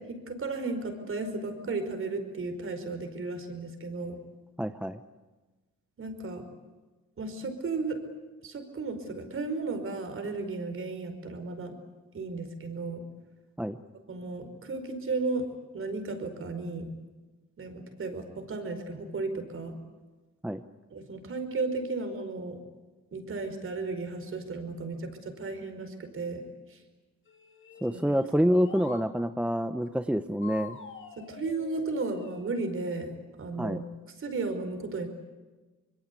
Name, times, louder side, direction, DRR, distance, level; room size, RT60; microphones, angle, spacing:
voice 1, 0.0-4.2 6.0-6.4 7.2-8.0 8.4-11.8 12.1-13.0 14.1-15.4 15.7-16.9 17.6-19.8 20.9-22.6 23.1-26.8 27.9-28.0 31.2-33.1 33.4-33.8 34.2-35.1, right 3 dB, 45° right, 7 dB, 5.1 m, -34 dB
voice 2, 4.6-5.0 13.6-13.8 20.4-20.6 27.8-30.8 33.6-33.8, equal, 5° right, 9 dB, 0.9 m, -27 dB
sound 1, 27.3-29.1 30.4-32.5, left 6 dB, 40° left, 3.0 m, -46 dB
25.5 x 22.0 x 8.4 m, 1.2 s
cardioid pair, 90°, 30 cm